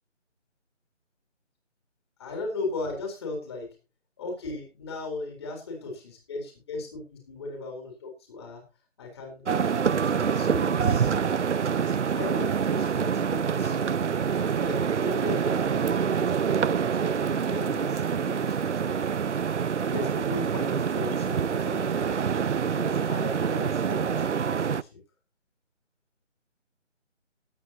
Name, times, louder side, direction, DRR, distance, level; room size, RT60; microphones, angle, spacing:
voice 1, 2.2-3.7 4.2-8.6 9.0-9.4 9.8-11.1 11.7-14.0 14.4-18.9 19.9-22.3 22.7-25.0, left 3 dB, 20° left, 2 dB, 4.0 m, -37 dB
sound 1, 9.5-24.8, right 7 dB, 70° right, 0.6 m, -26 dB
18.5 x 8.4 x 2.8 m, 0.28 s
figure-of-eight pair, 170°, 37 cm